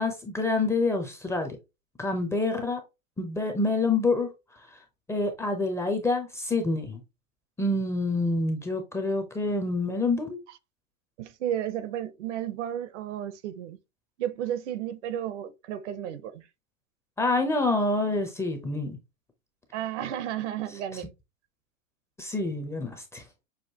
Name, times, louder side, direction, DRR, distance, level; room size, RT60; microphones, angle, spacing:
voice 1, 0.0-1.6 2.0-2.8 3.2-4.3 5.1-7.0 7.6-10.4 17.2-19.0 20.9-21.0 22.2-23.2, left 3 dB, 5° left, 0.6 m, -27 dB
voice 2, 11.2-13.8 14.2-16.5 19.7-21.1, right 10 dB, 60° right, 0.8 m, -33 dB
6.4 x 2.4 x 2.8 m
hypercardioid pair, 125°, 41 cm